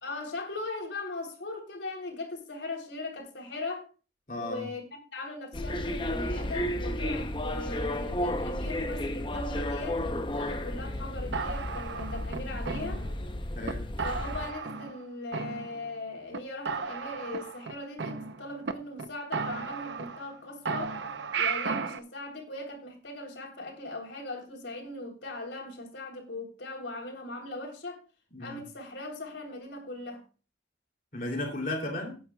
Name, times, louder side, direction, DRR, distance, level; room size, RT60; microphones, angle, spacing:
voice 1, 0.0-3.9 4.4-4.8 5.1-13.0 14.0-21.1 21.4-28.0 28.4-30.2, left 2 dB, 80° left, 3.6 m, -39 dB
voice 2, 4.3-4.7 13.6-13.9 28.3-28.6 31.1-32.2, left 2 dB, 45° left, 3.0 m, -34 dB
sound 1, 5.5-14.5, left 1 dB, 25° left, 0.8 m, -33 dB
sound 2, 11.3-13.3 13.7-13.8 14.0-15.0 15.3-16.0 16.3-16.4 16.7-18.7 19.0-19.1 19.3-20.4 20.7-22.0, right 5 dB, 80° right, 0.8 m, -34 dB
18.5 x 9.3 x 2.4 m
head